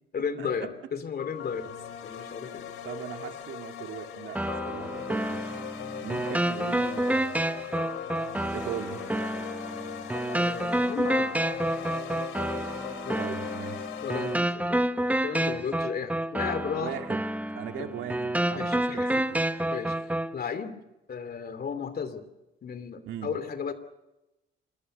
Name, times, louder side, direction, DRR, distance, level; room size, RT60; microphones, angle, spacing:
voice 1, 0.1-1.8 2.0-2.7 10.3-11.4 12.5-12.7 13.0-13.2 14.0-14.8 15.2-17.0 17.8-17.9 18.5-19.2 19.7-20.8 21.1-22.3 22.6-23.7, left 6 dB, 50° left, 11 dB, 2.9 m, -34 dB
sound 1, 1.2-14.3, left 8 dB, 85° left, 2.9 m, -39 dB
voice 2, 2.8-5.6 6.0-7.9 8.5-9.0 13.2-13.9 15.4-15.6 16.8-17.3 17.5-19.4 23.1-23.3, right 9 dB, 80° right, 5 dB, 2.3 m, -39 dB
sound 2, 4.3-20.3, right 1 dB, 5° right, 1.2 m, -29 dB
26.5 x 21.0 x 6.6 m, 0.96 s
cardioid pair, 90°, 20 cm